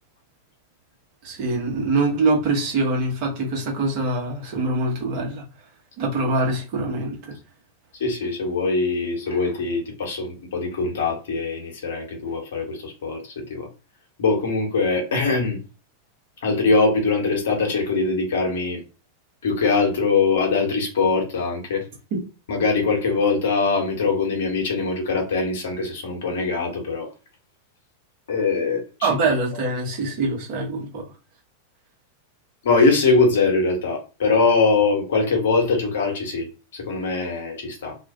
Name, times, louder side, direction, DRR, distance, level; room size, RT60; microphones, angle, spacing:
voice 1, 1.2-5.4 6.0-7.3 22.1-22.2 29.0-31.0, right 2 dB, 45° right, -1 dB, 0.9 m, -24 dB
voice 2, 8.0-13.7 14.2-15.6 16.4-18.8 19.4-21.8 22.5-27.1 28.3-29.1 32.6-38.0, left 4 dB, 60° left, 2 dB, 0.9 m, -22 dB
2.4 x 2.1 x 2.5 m, 0.32 s
figure-of-eight pair, 90°, 0 cm